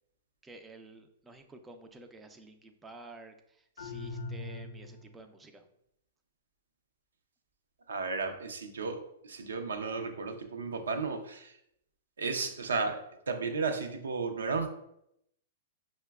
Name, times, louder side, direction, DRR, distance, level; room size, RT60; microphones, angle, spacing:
voice 1, 0.4-5.6, right 2 dB, 15° right, 6 dB, 0.4 m, -51 dB
sound 1, 3.8-5.2, left 2 dB, 80° left, 0.5 m, -41 dB
voice 2, 7.9-11.6 12.2-14.7, right 4 dB, 85° right, 5 dB, 0.6 m, -34 dB
5.6 x 2.1 x 2.3 m, 0.76 s
hypercardioid pair, 120°, 0 cm